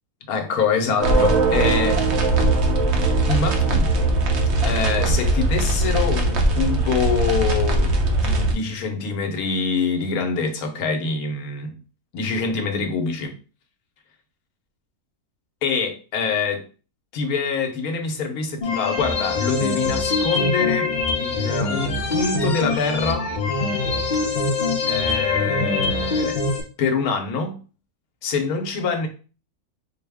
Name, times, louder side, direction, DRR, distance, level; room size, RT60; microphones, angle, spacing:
voice 1, 0.3-2.0 3.3-3.9 4.6-7.9 8.2-11.7 12.1-13.3 15.6-16.6 17.1-20.9 21.2-23.3 24.9-26.4 26.8-27.6 28.2-29.1, left 5 dB, 75° left, 1.2 m, -25 dB
sound 1, 1.0-8.5, right 2 dB, 55° right, 0.9 m, -20 dB
sound 2, 18.6-26.6, left 3 dB, 50° left, 0.6 m, -23 dB
4.4 x 2.1 x 3.4 m
omnidirectional pair, 1.6 m